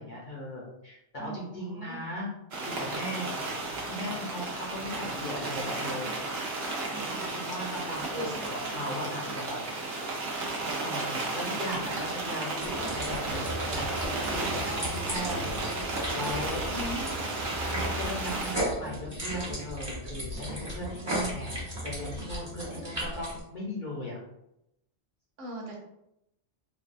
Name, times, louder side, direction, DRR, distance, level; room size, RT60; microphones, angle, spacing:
voice 1, 0.0-2.3 2.6-3.3 3.8-6.1 7.1-9.6 10.8-16.7 17.6-21.5 21.8-24.2, equal, 50° left, -5 dB, 0.7 m, -38 dB
voice 2, 1.2-2.0 6.9-7.4 8.1-8.3 16.7-17.2 22.7-22.8 25.4-25.7, right 1 dB, 90° right, -2 dB, 1.1 m, -39 dB
sound 1, 2.5-18.6, right 2 dB, 60° right, 0.9 m, -34 dB
sound 2, 12.6-23.4, equal, 25° right, 1.0 m, -35 dB
3.3 x 2.2 x 2.5 m, 0.84 s
omnidirectional pair, 1.2 m